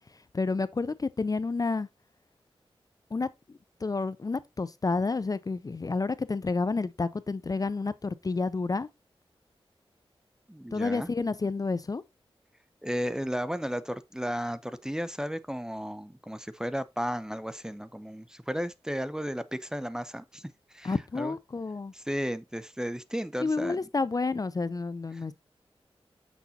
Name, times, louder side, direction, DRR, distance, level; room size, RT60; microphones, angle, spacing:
voice 1, 0.3-1.9 3.1-8.9 10.7-12.0 20.8-21.9 23.4-25.3, left 3 dB, 35° left, 0.5 m, -30 dB
voice 2, 10.5-11.1 12.8-21.3 21.9-23.8, equal, 5° right, 0.6 m, -34 dB
6.9 x 6.1 x 2.8 m
wide cardioid pair, 65°, 10 cm